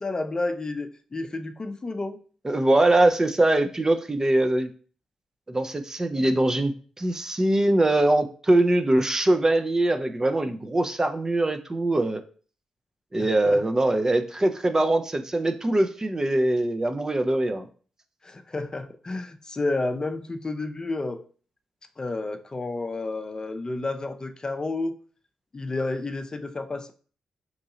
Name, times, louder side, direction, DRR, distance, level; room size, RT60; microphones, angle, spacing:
voice 1, 0.0-2.2 13.2-13.6 18.2-21.2 22.0-25.0 25.5-26.9, left 2 dB, 35° left, 8 dB, 0.5 m, -31 dB
voice 2, 2.4-4.7 5.5-12.2 13.1-17.7, right 1 dB, 25° right, 8 dB, 0.5 m, -22 dB
3.0 x 2.7 x 3.7 m, 0.40 s
supercardioid pair, 45°, 2 cm